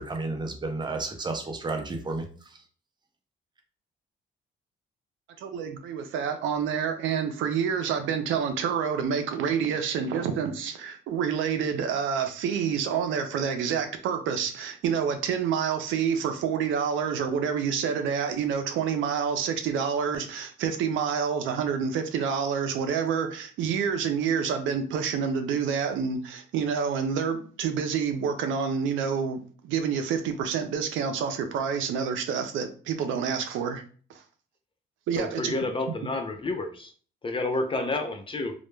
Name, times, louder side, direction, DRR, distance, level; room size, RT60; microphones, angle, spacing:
voice 1, 0.0-2.2, right 3 dB, 20° right, 4 dB, 0.6 m, -31 dB
voice 2, 5.4-33.8 35.1-35.6, right 7 dB, 80° right, 7 dB, 0.4 m, -28 dB
voice 3, 35.1-36.9 37.2-38.5, left 2 dB, 25° left, 5 dB, 0.4 m, -30 dB
2.2 x 2.0 x 3.1 m, 0.41 s
cardioid pair, 90°, 20 cm